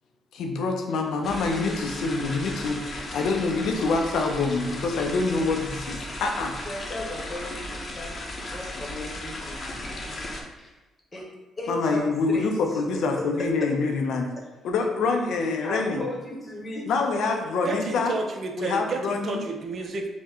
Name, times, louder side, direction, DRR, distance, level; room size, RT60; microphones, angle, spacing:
voice 1, 0.3-6.6 11.7-14.3 14.6-16.0 16.9-18.1 18.6-19.4, left 3 dB, 80° left, 3 dB, 0.4 m, -26 dB
sound 1, 1.2-10.4, left 1 dB, 40° left, 0.7 m, -36 dB
voice 2, 6.6-10.7 11.1-11.2 11.6-12.5 12.9-13.3 13.6-13.7 15.6-17.2, left 2 dB, 25° left, -2 dB, 1.0 m, -36 dB
voice 3, 17.6-20.1, right 3 dB, 50° right, 4 dB, 0.5 m, -31 dB
3.5 x 2.1 x 4.3 m, 1.1 s
cardioid pair, 90°, 0 cm